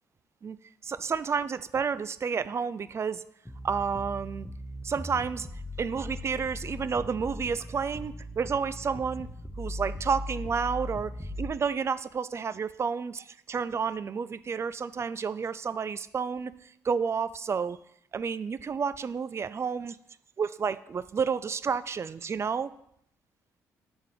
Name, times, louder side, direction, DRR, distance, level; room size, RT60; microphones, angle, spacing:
voice 1, 0.8-3.2 3.6-4.5 4.8-5.5 5.8-9.3 9.6-16.5 16.8-17.8 18.1-20.0 20.4-22.7, right 6 dB, 35° right, 15 dB, 0.3 m, -30 dB
sound 1, 3.5-11.5, left 1 dB, 10° left, 1.0 m, -39 dB
7.0 x 3.7 x 4.8 m, 0.73 s
hypercardioid pair, 50°, 8 cm